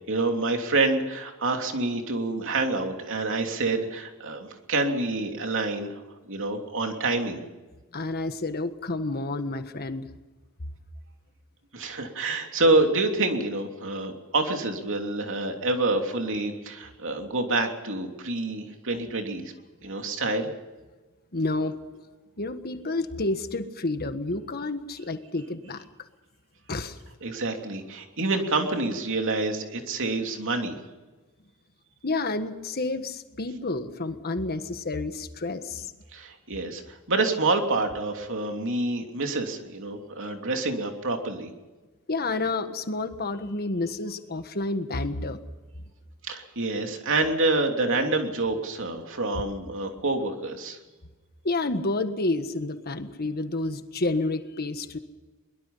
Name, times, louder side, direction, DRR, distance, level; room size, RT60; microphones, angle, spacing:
voice 1, 0.1-6.0 6.3-7.4 11.7-19.5 19.8-20.5 27.2-30.8 36.1-41.5 46.2-50.8, right 2 dB, 60° right, 4 dB, 3.1 m, -27 dB
voice 2, 7.9-10.1 21.3-21.8 22.4-25.9 26.7-27.0 32.0-35.9 42.1-45.4 51.4-55.0, left 2 dB, 45° left, 9 dB, 1.5 m, -29 dB
23.0 x 22.0 x 5.7 m, 1.2 s
head